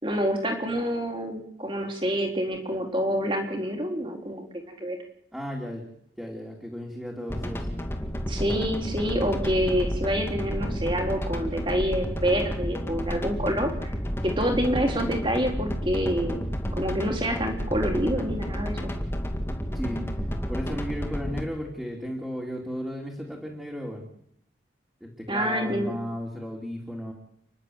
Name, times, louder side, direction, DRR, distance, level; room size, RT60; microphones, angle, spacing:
voice 1, 0.0-5.0 8.3-13.9 14.2-16.5 16.8-18.8 25.3-25.9, equal, 30° right, 3 dB, 3.8 m, -27 dB
voice 2, 5.3-5.8 6.2-7.8 19.7-20.0 20.5-24.1 25.0-27.1, equal, 5° right, -1 dB, 3.0 m, -34 dB
sound 1, 7.3-21.4, equal, 15° left, 2.0 m, -31 dB
30.0 x 11.5 x 8.0 m, 0.71 s
head